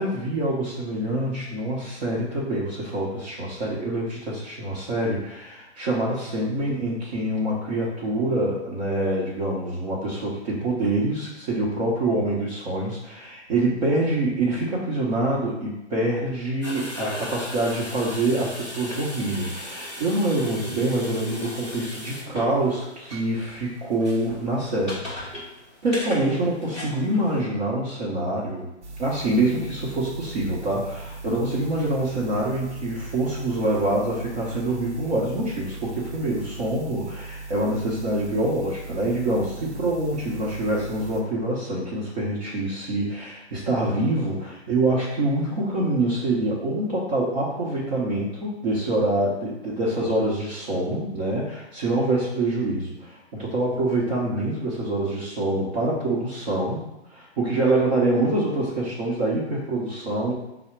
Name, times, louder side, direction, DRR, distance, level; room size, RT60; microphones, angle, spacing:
voice 1, 0.0-25.4 25.8-28.7 29.0-56.8 57.1-60.3, right 1 dB, 40° right, -6 dB, 0.9 m, -25 dB
sound 1, 16.6-27.4, left 1 dB, 5° right, 0.3 m, -38 dB
sound 2, 28.8-41.2, right 3 dB, 75° right, 0.9 m, -39 dB
4.6 x 2.1 x 4.4 m, 0.91 s
hypercardioid pair, 150°, 35 cm